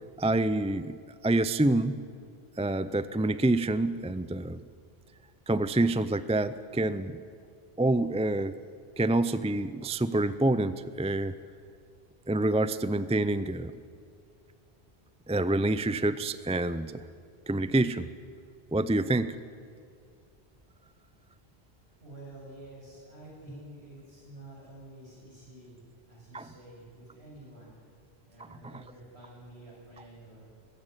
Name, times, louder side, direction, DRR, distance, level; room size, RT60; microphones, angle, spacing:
voice 1, 0.2-2.0 2.6-4.6 5.5-7.2 7.8-8.5 9.0-11.3 12.3-13.7 15.3-17.0 17.5-18.1 18.7-19.3 26.3-26.5, right 2 dB, 10° right, 14 dB, 0.3 m, -27 dB
voice 2, 22.0-25.8 26.1-27.8 28.2-30.5, right 1 dB, 80° right, -4 dB, 8.4 m, -49 dB
20.5 x 16.5 x 9.8 m, 2.3 s
omnidirectional pair, 1.1 m